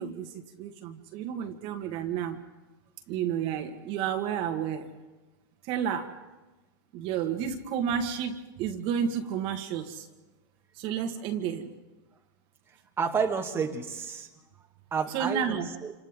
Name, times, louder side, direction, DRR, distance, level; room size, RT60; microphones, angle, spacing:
voice 1, 0.0-2.4 3.1-4.9 5.7-6.1 6.9-10.1 10.8-11.7 15.1-15.7, right 8 dB, 50° right, 5 dB, 1.9 m, -31 dB
voice 2, 13.0-14.3 14.9-15.9, right 6 dB, 20° right, 2 dB, 1.9 m, -30 dB
28.5 x 27.0 x 3.8 m, 1.1 s
hypercardioid pair, 125°, 12 cm